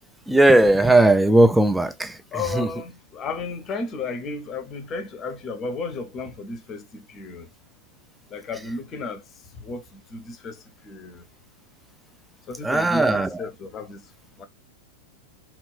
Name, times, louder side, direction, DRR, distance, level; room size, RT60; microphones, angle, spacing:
voice 1, 0.3-2.2 2.5-2.7 12.6-13.4, right 2 dB, 5° right, 0.4 m, -17 dB
voice 2, 2.3-7.5 8.3-9.2 9.6-9.8 10.1-10.6 10.8-11.2 12.5-14.0 14.4-14.5, left 3 dB, 30° left, 0.7 m, -33 dB
3.0 x 2.5 x 3.2 m
figure-of-eight pair, 90°, 0 cm